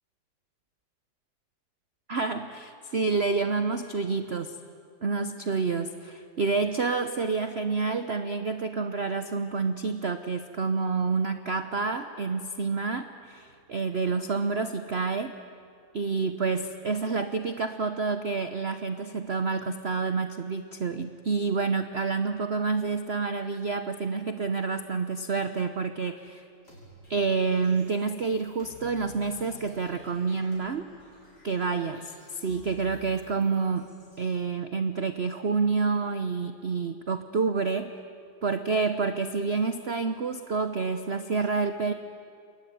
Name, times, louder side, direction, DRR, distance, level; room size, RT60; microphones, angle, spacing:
voice 1, 2.1-4.6 5.0-15.4 15.9-26.4 27.1-30.9 31.4-33.9 34.2-37.9 38.4-41.9, right 4 dB, 45° right, 9 dB, 0.9 m, -28 dB
sound 1, 26.6-34.3, left 1 dB, 60° left, 6.9 m, -53 dB
28.0 x 22.5 x 9.3 m, 2.5 s
omnidirectional pair, 2.0 m